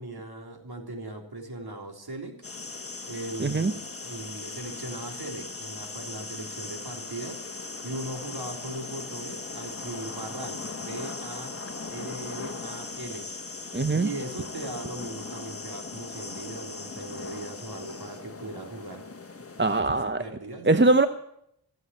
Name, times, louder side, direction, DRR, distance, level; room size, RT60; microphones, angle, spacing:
voice 1, 0.0-2.4 3.1-7.4 7.8-11.5 11.9-13.3 14.0-19.0 19.7-20.7, right 2 dB, 55° right, 3 dB, 3.6 m, -39 dB
sound 1, 2.4-19.8, left 3 dB, 30° left, 1.4 m, -39 dB
voice 2, 3.4-3.7 13.7-14.1 19.6-20.2 20.7-21.1, right 3 dB, 25° right, 10 dB, 0.8 m, -21 dB
16.0 x 8.0 x 9.1 m, 0.74 s
cardioid pair, 45°, 46 cm